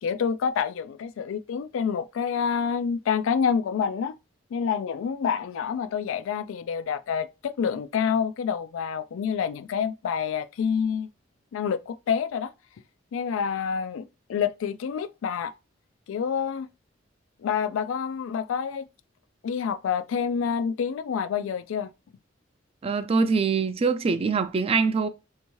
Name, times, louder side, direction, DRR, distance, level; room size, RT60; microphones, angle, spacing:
voice 1, 0.0-4.2 4.5-11.1 11.5-12.5 13.1-15.5 16.1-16.7 17.4-18.8 19.4-21.9, left 7 dB, 90° left, 0.3 m, -27 dB
voice 2, 22.8-25.1, right 4 dB, 30° right, 0.3 m, -23 dB
3.4 x 2.8 x 3.0 m
head